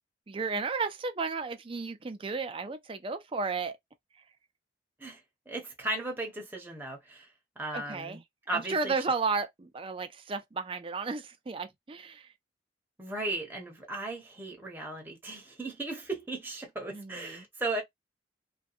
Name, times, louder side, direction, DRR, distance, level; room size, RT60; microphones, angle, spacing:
voice 1, 0.3-3.8 7.7-8.2 8.5-12.3 16.9-17.4, right 4 dB, 30° right, 0.4 m, -33 dB
voice 2, 5.5-7.3 7.6-8.2 8.5-8.9 13.0-17.8, right 2 dB, 10° right, 0.8 m, -36 dB
2.7 x 2.2 x 2.4 m
head